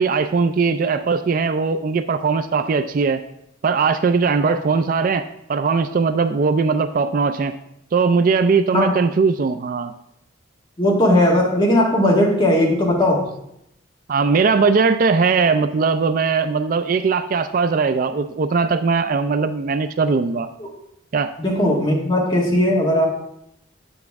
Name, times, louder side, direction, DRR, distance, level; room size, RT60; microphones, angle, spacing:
voice 1, 0.0-3.2 3.6-5.2 5.5-7.5 7.9-9.9 14.1-20.5 21.1-21.3, right 4 dB, 45° right, 10 dB, 0.3 m, -19 dB
voice 2, 10.8-13.3 21.4-23.1, left 1 dB, 25° left, -2 dB, 1.7 m, -17 dB
8.6 x 7.1 x 3.5 m, 0.78 s
head